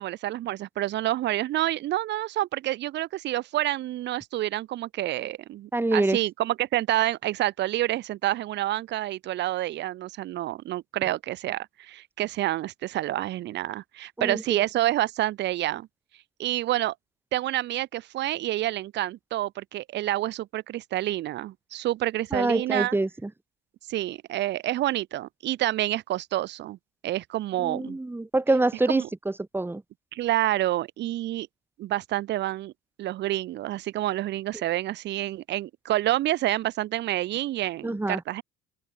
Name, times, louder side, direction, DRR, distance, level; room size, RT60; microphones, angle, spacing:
voice 1, 0.0-15.9 16.4-16.9 17.3-23.0 23.9-26.8 27.0-28.0 28.9-29.1 30.1-31.5 31.8-32.7 33.0-38.4, right 14 dB, 55° right, 1.2 m, -28 dB
voice 2, 5.7-6.2 14.2-14.4 22.3-23.3 27.6-29.8 37.8-38.2, right 2 dB, 10° right, 2.2 m, -25 dB
open air
hypercardioid pair, 75°, 21 cm